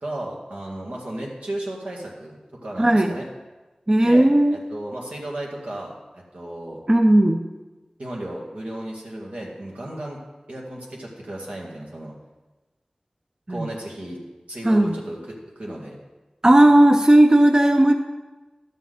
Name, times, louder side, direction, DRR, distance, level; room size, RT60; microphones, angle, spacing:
voice 1, 0.0-3.3 4.0-6.8 8.0-10.2 10.5-12.1 13.5-16.0, right 1 dB, 90° right, -3 dB, 2.0 m, -34 dB
voice 2, 2.8-3.2 3.9-4.6 6.9-7.5 13.5-13.7 14.6-15.0 16.4-17.9, right 1 dB, 30° right, 5 dB, 0.5 m, -15 dB
11.5 x 7.4 x 3.9 m, 1.2 s
wide cardioid pair, 60°, 2 cm